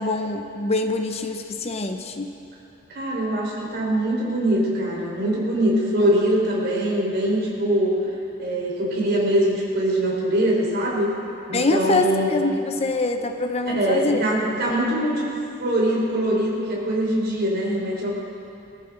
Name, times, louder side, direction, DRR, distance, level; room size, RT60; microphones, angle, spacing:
voice 1, 0.0-2.3 11.5-14.2, left 2 dB, 30° left, 6 dB, 0.6 m, -24 dB
voice 2, 2.9-11.1 11.5-12.4 13.7-15.3 15.6-18.1, right 1 dB, 50° right, -4 dB, 4.1 m, -23 dB
23.0 x 14.0 x 3.8 m, 2.9 s
head